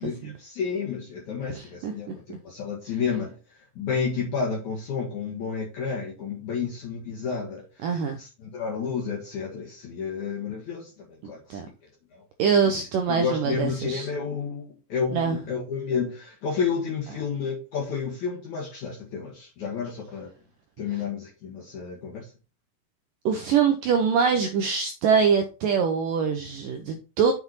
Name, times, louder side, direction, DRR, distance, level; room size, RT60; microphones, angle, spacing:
voice 1, 0.0-7.9 8.2-11.6 12.1-12.2 12.6-20.3 20.8-22.3, left 6 dB, 55° left, 2.6 m, -31 dB
voice 2, 1.5-2.4 7.8-8.2 11.5-11.7 12.4-14.1 15.1-15.4 23.3-27.3, right 6 dB, 85° right, 1.9 m, -24 dB
7.8 x 5.8 x 4.2 m
omnidirectional pair, 4.9 m